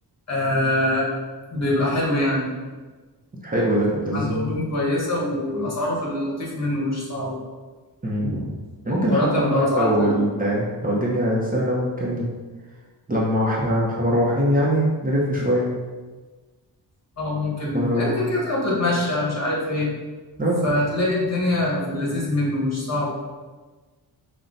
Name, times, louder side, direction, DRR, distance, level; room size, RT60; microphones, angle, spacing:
voice 1, 0.3-1.1 1.5-2.5 4.1-7.4 8.9-10.2 17.2-19.9 20.6-23.1, left 1 dB, 40° left, -5 dB, 1.4 m, -24 dB
voice 2, 3.4-4.6 5.5-5.7 8.0-8.6 8.8-12.3 13.1-15.7 17.7-18.2 20.4-20.6, equal, 20° right, -6 dB, 0.7 m, -22 dB
5.5 x 2.2 x 3.8 m, 1.3 s
wide cardioid pair, 130°, 42 cm